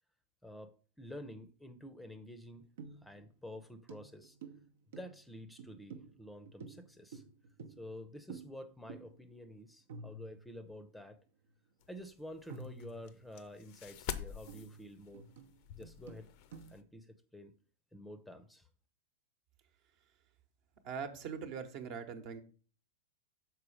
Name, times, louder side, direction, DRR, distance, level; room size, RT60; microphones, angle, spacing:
voice 1, 0.4-2.7 3.0-4.4 5.0-7.2 7.8-11.2 11.9-15.3 15.8-16.3 16.7-17.5 17.9-18.7, left 1 dB, 5° left, 0.7 m, -49 dB
sound 1, 2.8-3.3 3.5-3.6 3.9-8.0 8.3-8.6 8.9-9.2 9.5-9.6 9.9-10.8 11.5-11.6 12.5-13.4 13.8-16.8, right 4 dB, 65° right, 0.8 m, -51 dB
sound 2, 11.8-16.8, left 10 dB, 50° left, 0.6 m, -47 dB
voice 2, 20.8-22.4, right 6 dB, 50° right, 1.1 m, -41 dB
6.7 x 4.5 x 5.0 m
figure-of-eight pair, 95°, 0 cm